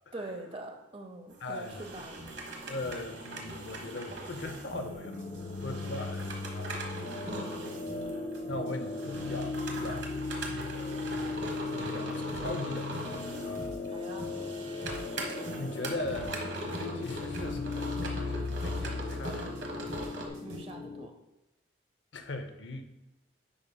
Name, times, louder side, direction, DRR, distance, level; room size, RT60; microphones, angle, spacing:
voice 1, 0.1-2.2 7.2-7.9 13.9-14.3 20.4-21.1, right 2 dB, 30° right, 5 dB, 0.8 m, -44 dB
sound 1, 1.3-20.3, right 2 dB, 70° right, 1.1 m, -41 dB
voice 2, 1.4-1.9 2.7-5.3 5.6-6.8 8.5-10.1 10.6-11.2 11.8-13.6 15.6-16.3 16.7-19.8 22.1-22.8, left 2 dB, 75° left, 7 dB, 0.7 m, -40 dB
sound 2, 1.7-20.6, equal, 50° right, 1.8 m, -46 dB
sound 3, 5.0-21.1, left 3 dB, 35° left, 0.3 m, -37 dB
9.9 x 5.5 x 2.3 m, 0.98 s
head